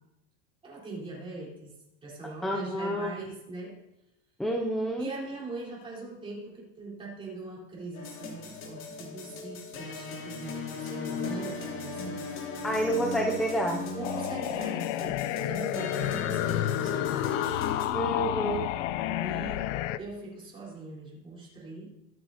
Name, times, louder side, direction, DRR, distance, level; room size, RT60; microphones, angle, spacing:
voice 1, 0.6-1.7 2.0-3.8 5.0-12.2 13.9-17.3 18.1-18.2 18.9-19.7 20.0-21.9, right 2 dB, 15° right, -5 dB, 4.0 m, -41 dB
voice 2, 2.4-3.1 4.4-5.1 12.6-13.8 17.9-18.7, right 1 dB, ahead, 0 dB, 0.3 m, -29 dB
sound 1, 7.9-17.9, left 4 dB, 35° left, 2.1 m, -38 dB
sound 2, 14.0-20.0, left 13 dB, 75° left, 0.6 m, -30 dB
23.5 x 8.6 x 2.8 m, 0.88 s
cardioid pair, 175°, 37 cm